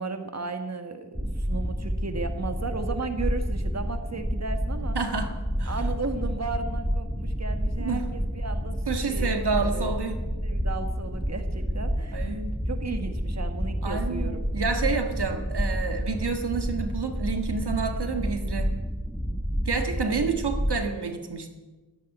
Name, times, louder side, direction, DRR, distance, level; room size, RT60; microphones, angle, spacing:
voice 1, 0.0-5.0 5.7-9.3 9.6-10.0 10.4-14.5 19.9-20.2, right 4 dB, 40° right, 7 dB, 1.5 m, -35 dB
sound 1, 1.2-20.8, equal, ahead, 1.0 m, -29 dB
voice 2, 5.0-5.3 5.6-5.8 7.8-8.0 8.9-10.2 12.1-12.6 13.8-18.8 19.7-21.5, right 5 dB, 75° right, 6 dB, 1.7 m, -29 dB
13.0 x 10.5 x 9.2 m, 1.2 s
wide cardioid pair, 50°, 40 cm